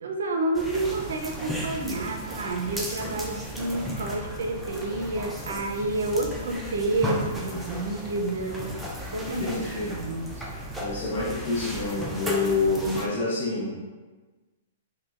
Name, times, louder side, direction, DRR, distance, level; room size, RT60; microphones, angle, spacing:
voice 1, 0.0-10.5, right 2 dB, 80° right, 3 dB, 0.5 m, -30 dB
sound 1, 0.5-13.1, equal, ahead, 0.4 m, -35 dB
voice 2, 9.2-10.0 10.8-13.7, left 3 dB, 55° left, -7 dB, 0.7 m, -27 dB
5.0 x 2.2 x 2.4 m, 1.3 s
hypercardioid pair, 140°, 0 cm